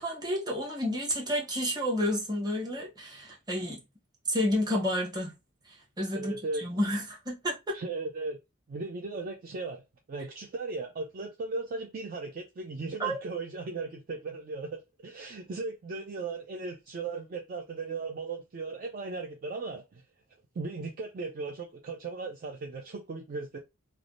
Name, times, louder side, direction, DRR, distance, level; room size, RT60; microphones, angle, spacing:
voice 1, 0.0-3.8 4.3-5.4 5.7-7.8 13.0-13.2, equal, 20° right, 0.9 m, -30 dB
voice 2, 6.1-6.6 7.7-8.4 8.7-9.8 10.1-20.0 20.6-23.6, right 3 dB, 40° right, 0.3 m, -37 dB
3.3 x 2.0 x 2.4 m
head